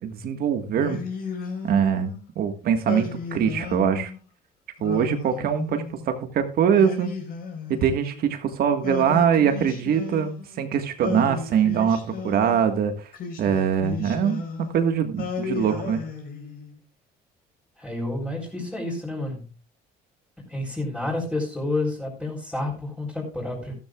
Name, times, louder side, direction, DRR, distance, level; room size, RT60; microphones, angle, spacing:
voice 1, 0.0-1.0 1.6-4.1 4.8-7.1 7.7-12.0 12.2-13.1 13.4-14.4 14.7-16.0, right 8 dB, 65° right, 7 dB, 1.7 m, -23 dB
Singing, 0.7-2.2 2.8-4.2 4.8-6.1 6.7-8.3 8.8-10.6 11.0-12.6 13.1-14.8 15.2-16.8, left 5 dB, 60° left, 4.4 m, -34 dB
voice 2, 17.8-19.5 20.5-23.7, left 2 dB, 5° left, -6 dB, 4.2 m, -29 dB
14.0 x 13.0 x 2.4 m, 0.34 s
cardioid pair, 110°, 17 cm